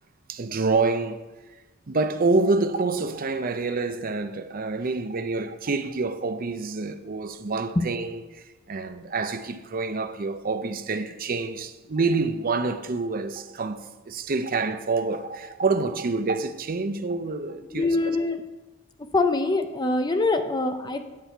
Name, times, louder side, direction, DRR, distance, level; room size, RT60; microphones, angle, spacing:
voice 1, 0.3-1.2 1.9-18.0, right 3 dB, 45° right, 0.6 m, -27 dB
voice 2, 17.7-18.4 19.1-21.1, left 2 dB, 20° left, 0.7 m, -24 dB
9.4 x 8.4 x 4.5 m
head